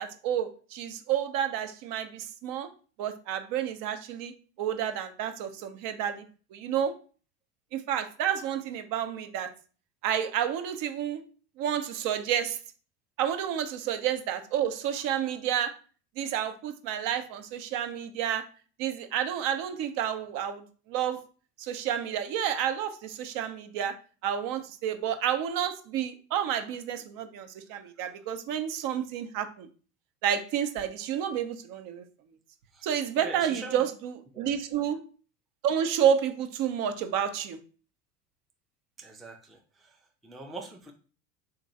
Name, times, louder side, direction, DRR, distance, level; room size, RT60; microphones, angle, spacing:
voice 1, 0.0-2.7 3.0-4.3 4.6-6.2 6.5-7.0 7.7-9.5 10.0-11.2 11.6-12.6 13.2-15.7 16.2-18.4 18.8-21.2 21.6-23.9 24.2-29.7 30.2-32.0 32.8-35.0 35.6-37.6, right 9 dB, 55° right, 8 dB, 0.7 m, -30 dB
voice 2, 33.2-33.8 34.3-34.6 39.0-39.9 40.2-40.9, right 2 dB, ahead, 2 dB, 0.4 m, -42 dB
3.0 x 2.6 x 3.9 m, 0.38 s
hypercardioid pair, 95°, 41 cm